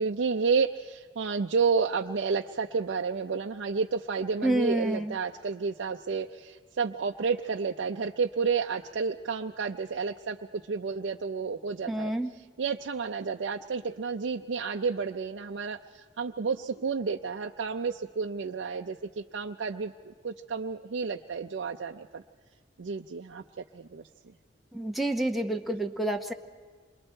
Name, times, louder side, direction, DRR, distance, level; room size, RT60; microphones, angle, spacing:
voice 1, 0.0-22.2 22.8-24.1, right 5 dB, 85° right, 3 dB, 0.5 m, -31 dB
voice 2, 4.4-5.1 11.9-12.3 24.7-26.3, right 1 dB, ahead, 1 dB, 0.8 m, -28 dB
27.5 x 22.5 x 4.4 m, 1.5 s
head